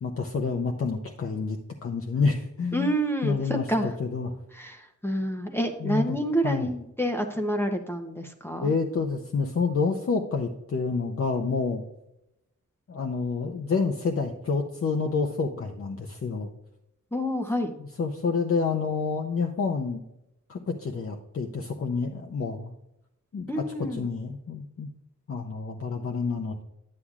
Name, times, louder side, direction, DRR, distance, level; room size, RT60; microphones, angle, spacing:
voice 1, 0.0-2.9 3.2-4.3 5.8-6.2 6.4-6.7 8.6-11.8 12.9-16.5 18.0-20.0 20.5-22.7 23.3-23.6 23.9-24.9 25.3-26.6, left 4 dB, 50° left, 3 dB, 0.7 m, -28 dB
voice 2, 2.7-3.9 4.5-8.7 17.1-17.7 23.5-24.0, equal, 10° left, 2 dB, 0.7 m, -28 dB
9.8 x 8.4 x 2.4 m, 0.85 s
wide cardioid pair, 135°, 30 cm